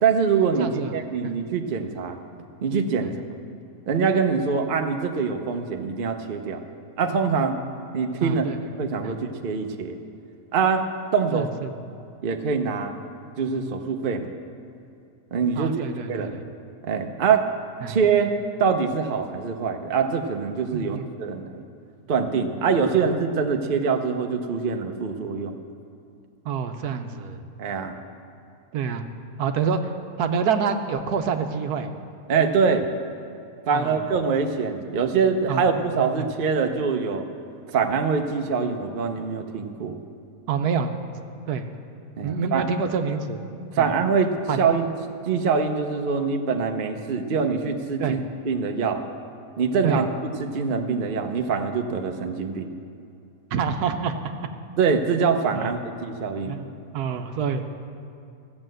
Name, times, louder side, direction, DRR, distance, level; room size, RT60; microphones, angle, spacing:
voice 1, 0.0-2.2 2.6-3.1 3.9-6.6 7.0-7.6 7.9-8.5 8.8-10.0 10.5-10.8 11.1-11.5 12.2-12.9 13.4-14.3 15.3-16.4 16.8-17.5 17.9-18.3 18.6-21.6 22.1-25.6 27.6-28.0 32.3-32.9 33.7-37.2 37.7-40.0 42.2-42.7 43.7-44.9 45.3-49.0 49.6-50.1 50.4-52.7 54.8-56.6, right 5 dB, 45° right, 5 dB, 0.8 m, -24 dB
voice 2, 0.6-0.9 1.2-1.3 3.0-3.1 8.2-8.6 9.0-9.1 11.3-12.0 15.5-16.4 17.8-18.0 20.7-21.1 26.4-27.4 28.7-29.0 29.4-31.9 33.7-34.1 35.5-35.9 36.2-36.3 40.5-40.9 41.5-41.7 42.2-43.4 43.8-43.9 44.5-44.6 48.0-48.2 49.8-50.0 53.5-54.2 55.5-55.7 56.5-56.6 56.9-57.6, right 6 dB, 75° right, 7 dB, 1.3 m, -27 dB
14.5 x 7.3 x 7.7 m, 2.5 s
omnidirectional pair, 1.7 m